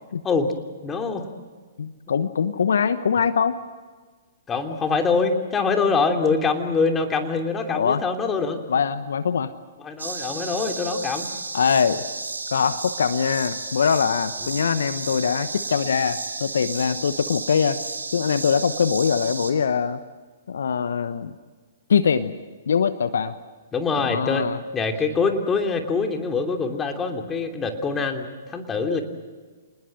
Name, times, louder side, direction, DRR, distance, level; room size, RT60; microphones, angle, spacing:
voice 1, 0.8-1.3 4.5-8.6 9.8-11.3 23.7-29.0, left 4 dB, 15° left, 4 dB, 3.1 m, -24 dB
voice 2, 1.8-3.6 7.7-8.0 8.7-9.5 11.5-12.0 12.5-17.8 18.1-20.0 20.5-21.3 21.9-22.3 22.7-23.3 24.0-24.6, left 6 dB, 65° left, 13 dB, 1.0 m, -22 dB
sound 1, 10.0-19.5, right 3 dB, 80° right, 3.1 m, -33 dB
27.5 x 20.0 x 7.7 m, 1.4 s
figure-of-eight pair, 120°, 0 cm